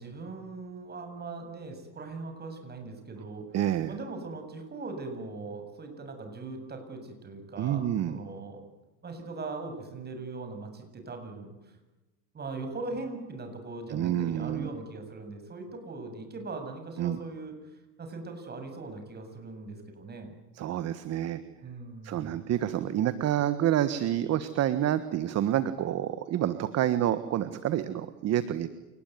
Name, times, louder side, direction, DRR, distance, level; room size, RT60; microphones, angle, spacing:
voice 1, 0.0-3.6 3.9-8.6 9.0-11.5 12.3-20.3 21.6-22.4, right 3 dB, 25° right, 6 dB, 7.5 m, -40 dB
voice 2, 3.5-3.9 7.6-8.2 13.9-14.7 17.0-17.2 20.5-21.4 22.0-28.7, right 11 dB, 40° right, 12 dB, 1.5 m, -28 dB
28.5 x 20.0 x 9.5 m, 1.1 s
supercardioid pair, 120°, 38 cm